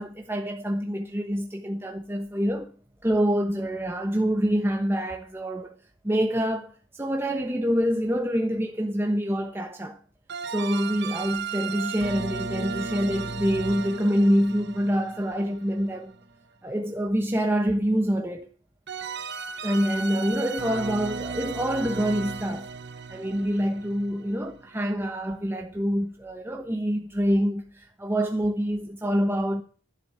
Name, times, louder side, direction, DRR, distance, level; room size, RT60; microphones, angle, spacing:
voice 1, 0.0-2.7 3.0-5.7 6.0-10.0 10.5-16.1 16.6-18.5 19.6-22.7 23.1-29.6, equal, 10° right, 1.0 m, -26 dB
sound 1, 10.3-16.2 18.9-24.6, right 5 dB, 55° right, 1.0 m, -35 dB
11.5 x 10.5 x 6.6 m
head